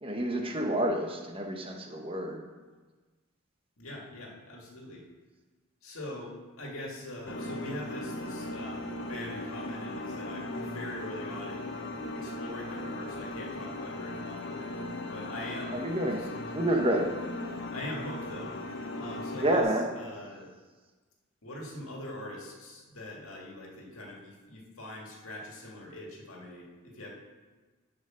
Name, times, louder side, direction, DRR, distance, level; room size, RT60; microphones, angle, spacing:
voice 1, 0.0-2.4 15.7-16.2 16.5-17.1 19.4-19.9, right 1 dB, 25° right, 2 dB, 1.0 m, -28 dB
voice 2, 3.8-5.1 5.8-8.8 9.1-11.7 12.1-14.8 15.1-15.8 16.1-16.3 17.5-18.6 18.9-20.5 21.4-27.1, left 1 dB, 75° left, -1 dB, 2.0 m, -42 dB
sound 1, 7.3-19.6, left 1 dB, 60° left, 0.8 m, -38 dB
9.8 x 5.0 x 6.3 m, 1.3 s
head